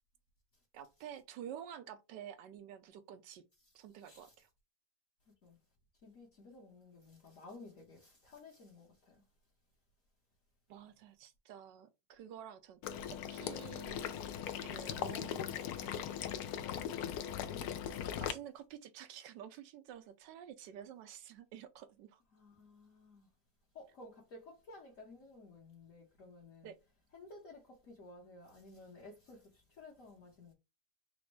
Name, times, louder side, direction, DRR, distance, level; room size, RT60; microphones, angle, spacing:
voice 1, 0.7-3.4 3.7-4.5 10.7-14.2 14.6-16.3 18.2-22.2 26.6-26.8, right 9 dB, 85° right, 1.3 m, -50 dB
voice 2, 4.0-4.3 5.3-5.6 6.0-9.2 22.3-23.3 23.7-26.7 27.1-30.5, left 2 dB, 55° left, 1.2 m, -55 dB
Water / Liquid, 12.8-18.3, left 9 dB, 70° left, 0.9 m, -39 dB
4.1 x 2.1 x 4.5 m
omnidirectional pair, 1.9 m